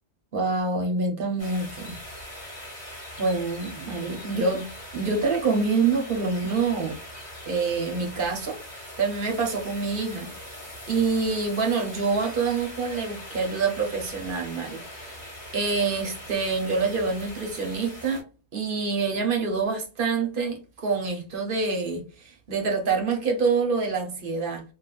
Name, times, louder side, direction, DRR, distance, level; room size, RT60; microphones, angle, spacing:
voice 1, 0.3-2.0 3.2-4.7 4.9-7.0 7.5-10.5 10.9-18.2 18.5-24.6, right 4 dB, 55° right, 0.8 m, -26 dB
sound 1, 1.4-18.2, equal, 25° left, 1.1 m, -41 dB
3.2 x 2.2 x 2.3 m
omnidirectional pair, 1.1 m